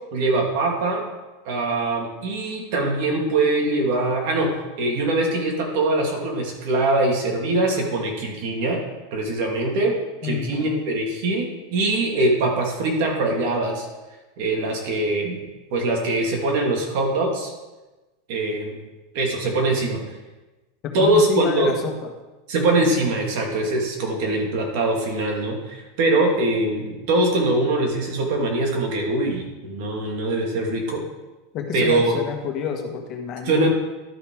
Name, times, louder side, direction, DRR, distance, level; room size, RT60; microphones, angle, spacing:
voice 1, 0.1-1.0 1.4-4.5 4.8-8.8 9.1-10.0 10.2-13.9 14.4-15.4 15.7-17.5 18.3-18.8 19.1-20.0 20.9-21.7 22.5-31.0 31.7-32.1 33.4-33.7, right 2 dB, 60° right, 0 dB, 2.5 m, -22 dB
voice 2, 10.2-10.8 20.8-22.1 31.5-33.7, left 5 dB, 40° left, 3 dB, 1.5 m, -28 dB
12.0 x 5.7 x 4.7 m, 1.1 s
supercardioid pair, 135°, 0 cm